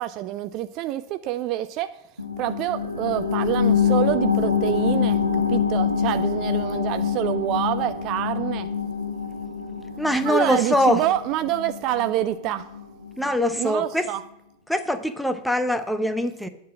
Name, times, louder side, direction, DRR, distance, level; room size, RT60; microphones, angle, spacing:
voice 1, 0.0-2.0 2.4-8.7 10.2-12.7 13.6-14.2, right 13 dB, 40° right, 12 dB, 0.3 m, -27 dB
sound 1, 2.2-13.3 13.7-13.8, left 6 dB, 90° right, 0.7 m, -25 dB
voice 2, 10.0-11.0 13.2-14.0 14.7-16.5, left 1 dB, ahead, 10 dB, 0.6 m, -23 dB
9.3 x 4.0 x 7.3 m, 0.83 s
figure-of-eight pair, 90°, 0 cm